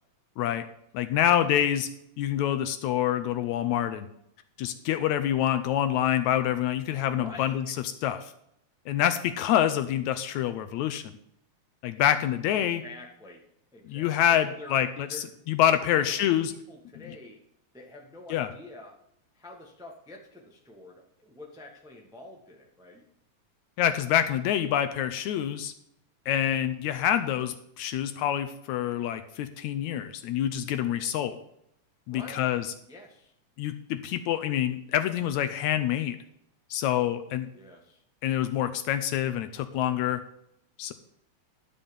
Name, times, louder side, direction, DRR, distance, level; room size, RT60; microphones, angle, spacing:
voice 1, 0.9-1.9 2.2-4.1 4.6-7.6 8.0-8.3 8.9-11.0 11.8-12.8 13.9-16.5 18.3-18.5 23.8-25.7 26.3-31.4 32.1-32.7 33.6-36.2 36.7-37.5 38.2-40.2 40.8-40.9, left 11 dB, 80° left, 10 dB, 1.8 m, -26 dB
voice 2, 7.2-7.7 12.5-13.4 13.7-14.8 15.1-15.4 15.9-17.4 17.7-19.0 19.3-23.1 32.1-32.5 32.9-33.3 37.5-38.0, left 2 dB, 5° right, 1 dB, 0.3 m, -47 dB
12.0 x 5.3 x 7.0 m, 0.75 s
omnidirectional pair, 3.6 m